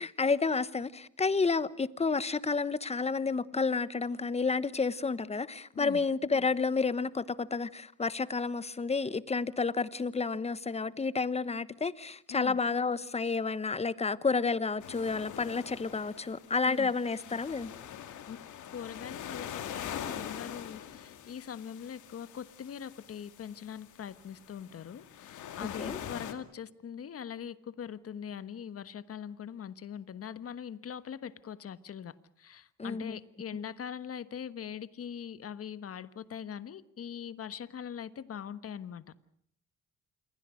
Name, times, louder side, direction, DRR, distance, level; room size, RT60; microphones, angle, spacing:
voice 1, 0.0-17.7 25.8-26.0 32.8-33.2, left 4 dB, 20° left, 1.1 m, -30 dB
sound 1, 14.8-26.3, left 9 dB, 75° left, 2.5 m, -44 dB
voice 2, 18.7-39.2, left 8 dB, 50° left, 1.3 m, -42 dB
27.5 x 22.0 x 6.4 m
cardioid pair, 90°, 30 cm